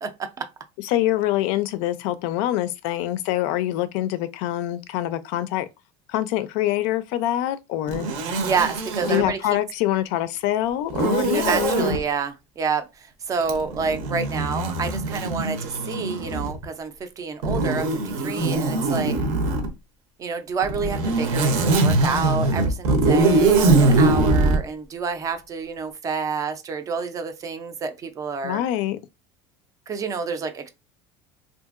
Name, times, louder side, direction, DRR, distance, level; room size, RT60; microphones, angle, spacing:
voice 1, 0.0-0.5 8.4-9.4 11.3-19.2 20.2-28.6 29.9-30.7, right 5 dB, 25° right, 0.4 m, -28 dB
voice 2, 0.8-5.7 6.1-8.1 9.1-12.0 28.4-29.0, left 14 dB, 70° left, 0.4 m, -25 dB
Zipper (clothing), 7.9-9.3 10.9-12.0 13.4-16.6 17.4-19.7 20.6-24.6, right 2 dB, 60° right, 0.7 m, -22 dB
2.7 x 2.5 x 2.4 m
cardioid pair, 145°, 13 cm